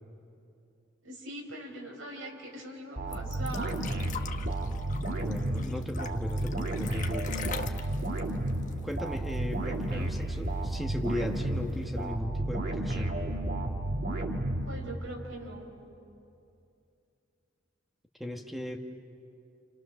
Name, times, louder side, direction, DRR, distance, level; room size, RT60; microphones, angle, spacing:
voice 1, 1.0-3.9 14.6-15.7, right 1 dB, 90° right, 0 dB, 5.2 m, -41 dB
sound 1, 3.0-15.2, right 1 dB, 55° right, 2.2 m, -32 dB
sound 2, 3.1-9.5 9.8-9.9 10.2-10.9 11.7-11.8, left 7 dB, 40° left, 1.1 m, -43 dB
voice 2, 5.2-7.4 8.6-13.1 18.2-18.8, left 1 dB, ahead, 3 dB, 1.3 m, -37 dB
29.5 x 28.0 x 6.4 m, 2.6 s
head